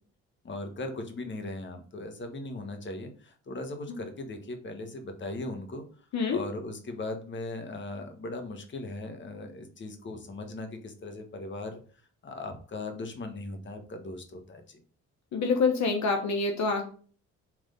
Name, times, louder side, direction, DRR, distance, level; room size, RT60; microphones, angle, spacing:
voice 1, 0.4-5.8 6.3-11.8 12.2-14.8, left 2 dB, 40° left, 5 dB, 1.5 m, -38 dB
voice 2, 15.3-16.8, left 4 dB, 65° left, 4 dB, 1.2 m, -26 dB
6.0 x 3.6 x 5.2 m, 0.43 s
cardioid pair, 90°, 30 cm